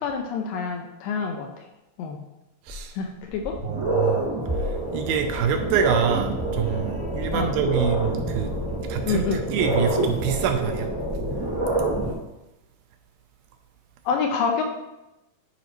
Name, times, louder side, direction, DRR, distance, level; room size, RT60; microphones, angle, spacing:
voice 1, 0.0-1.7 2.0-2.2 3.0-3.6 7.3-7.5 9.1-9.5 14.1-14.6, left 5 dB, 85° left, 3 dB, 2.0 m, -27 dB
sound 1, 2.7-2.8 3.3-12.1, right 1 dB, 30° right, 0.5 m, -27 dB
voice 2, 3.6-4.3 4.9-8.5 8.9-10.9, right 8 dB, 80° right, 6 dB, 2.1 m, -26 dB
12.0 x 5.3 x 3.0 m, 0.95 s
omnidirectional pair, 4.6 m